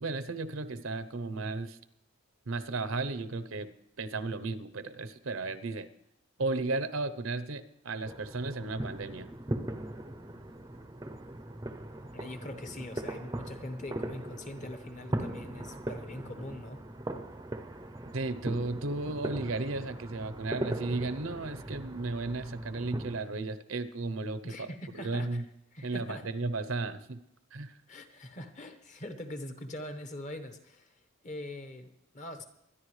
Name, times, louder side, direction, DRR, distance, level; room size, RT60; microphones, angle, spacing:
voice 1, 0.0-1.8 2.5-3.7 4.0-5.9 6.4-9.3 18.1-24.7 25.0-25.4 25.8-27.2 27.5-27.7, right 3 dB, 70° right, 14 dB, 0.8 m, -34 dB
sound 1, 8.0-23.2, right 1 dB, 15° right, 0.6 m, -39 dB
voice 2, 12.1-16.8 24.4-25.4 25.7-26.2 27.9-32.4, left 1 dB, 35° left, 8 dB, 1.1 m, -43 dB
23.5 x 10.5 x 3.2 m, 0.78 s
head